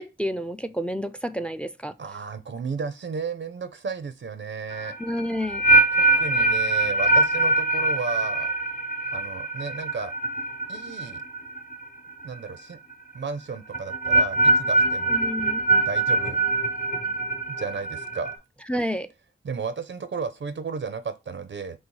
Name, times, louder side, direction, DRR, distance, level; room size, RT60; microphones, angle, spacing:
voice 1, 0.0-1.9 5.0-5.6 15.1-15.7 18.7-19.1, equal, 5° left, 0.4 m, -29 dB
voice 2, 2.0-5.0 6.0-8.5 9.1-10.1 10.7-11.2 12.2-12.8 13.1-15.1 15.8-16.4 17.5-18.4 19.4-21.8, right 5 dB, 65° right, 0.5 m, -33 dB
sound 1, 4.7-11.8 12.1-12.5 13.7-18.3, right 2 dB, 45° left, 1.0 m, -23 dB
3.2 x 2.7 x 4.5 m
cardioid pair, 40°, 21 cm